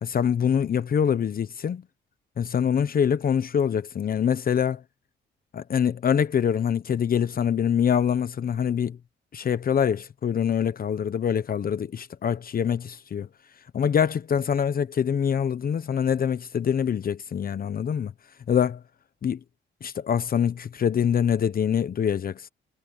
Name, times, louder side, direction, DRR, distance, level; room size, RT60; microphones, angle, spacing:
voice 1, 0.0-1.8 2.4-4.8 5.5-9.0 9.3-13.3 13.7-18.1 18.5-18.8 19.2-19.4 19.8-22.5, left 8 dB, 45° left, 1.0 m, -24 dB
cardioid pair, 90°, 20 cm